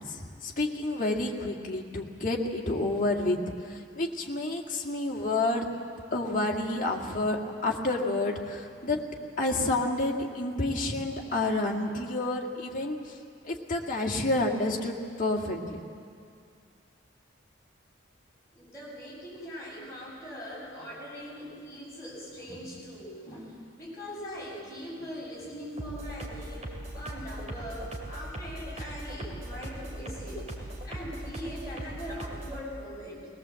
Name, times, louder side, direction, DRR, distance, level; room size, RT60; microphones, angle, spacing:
voice 1, 0.0-5.7 6.1-9.0 9.4-13.2 13.4-15.8, left 2 dB, 40° left, 0 dB, 2.1 m, -29 dB
voice 2, 18.5-33.3, equal, 15° left, -6 dB, 7.8 m, -41 dB
sound 1, 25.8-32.6, right 1 dB, 35° right, 2.9 m, -39 dB
20.5 x 20.0 x 7.7 m, 2.4 s
head